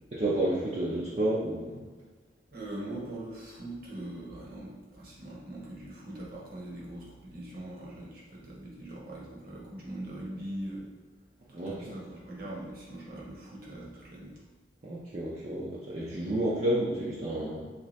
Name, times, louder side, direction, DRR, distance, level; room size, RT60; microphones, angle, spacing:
voice 1, 0.1-1.8 11.5-12.0 14.8-17.7, right 1 dB, 35° right, -7 dB, 0.5 m, -30 dB
voice 2, 2.5-10.9 11.5-14.4, right 1 dB, 55° right, -4 dB, 0.9 m, -41 dB
3.2 x 2.8 x 3.1 m, 1.4 s
head